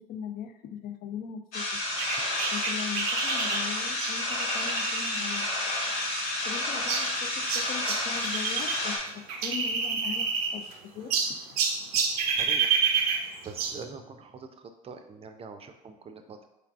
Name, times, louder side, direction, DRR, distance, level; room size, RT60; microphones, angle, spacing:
voice 1, 0.0-1.8 2.5-5.5 6.4-10.6 10.9-11.1, left 7 dB, 50° left, 8 dB, 0.5 m, -40 dB
sound 1, 1.5-9.0, left 2 dB, 80° left, 1.2 m, -30 dB
sound 2, 2.0-8.8 9.1-10.7 11.1-13.8, right 6 dB, 85° right, 0.5 m, -30 dB
voice 2, 12.4-12.8 13.4-16.5, right 5 dB, 30° right, 7 dB, 0.5 m, -44 dB
4.8 x 3.2 x 2.4 m, 0.86 s
hypercardioid pair, 70°, 19 cm